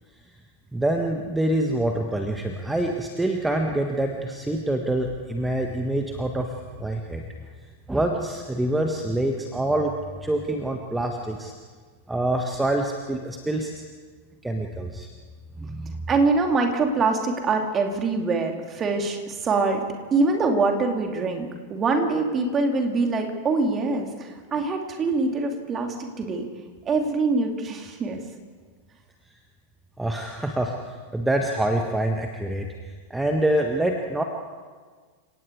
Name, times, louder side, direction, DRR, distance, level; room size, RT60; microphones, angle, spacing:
voice 1, 0.7-7.2 7.9-9.9 10.2-11.5 12.1-13.8 14.4-15.1 15.6-16.1 30.0-34.2, right 1 dB, 5° right, 3 dB, 1.6 m, -26 dB
voice 2, 16.1-19.8 20.1-26.5 26.9-28.2, right 3 dB, 25° right, 3 dB, 3.0 m, -24 dB
30.0 x 18.0 x 4.9 m, 1.5 s
figure-of-eight pair, 90°, 0 cm